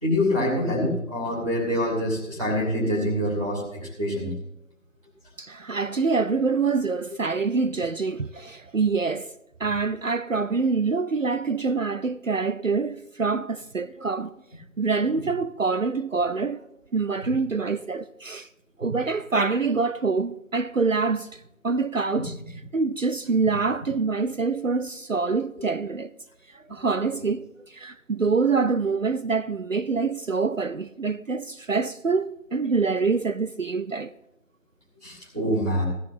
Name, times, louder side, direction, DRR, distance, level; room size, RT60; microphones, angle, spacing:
voice 1, 0.0-4.3 18.8-18.9 22.2-22.3 23.4-23.5 35.0-35.8, left 1 dB, 25° right, 2.6 m, -25 dB
voice 2, 5.4-9.3 9.6-14.3 14.8-16.6 16.9-18.5 18.8-22.3 22.7-26.1 26.5-34.1, right 4 dB, 65° right, 0.5 m, -25 dB
15.0 x 11.5 x 4.2 m
figure-of-eight pair, 175°, 42 cm